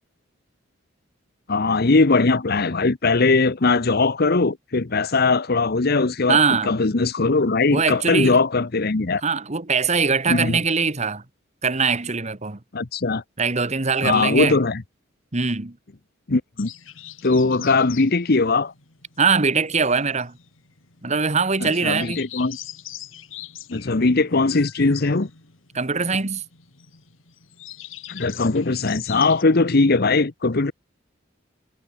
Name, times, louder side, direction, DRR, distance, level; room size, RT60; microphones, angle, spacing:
voice 1, 1.5-6.4 6.6-9.2 10.3-10.6 12.7-13.2 14.0-14.8 16.3-16.7 17.2-18.7 21.6-22.6 23.7-25.3 28.1-30.7, left 3 dB, 55° left, 0.9 m, -20 dB
voice 2, 6.3-6.8 7.7-8.4 9.2-11.2 11.6-12.6 13.4-14.6 15.3-15.8 19.2-20.3 21.0-22.2 25.7-26.4, right 4 dB, 35° right, 1.5 m, -22 dB
sound 1, 16.6-29.4, left 12 dB, 85° left, 3.1 m, -42 dB
head